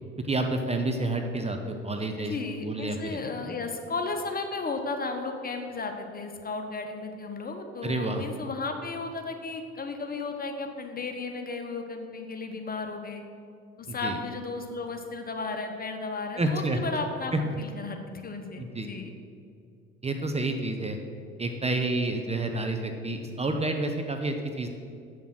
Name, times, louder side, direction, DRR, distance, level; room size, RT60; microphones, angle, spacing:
voice 1, 0.3-2.3 2.6-3.2 7.8-8.2 13.9-14.2 16.4-16.8 17.3-17.4 18.6-18.9 20.0-21.0 21.4-24.7, right 2 dB, 20° right, 4 dB, 0.8 m, -29 dB
voice 2, 2.2-13.2 13.8-17.3 17.6-19.1, left 3 dB, 25° left, 5 dB, 1.2 m, -34 dB
7.7 x 7.0 x 6.1 m, 2.5 s
figure-of-eight pair, 55°, 33 cm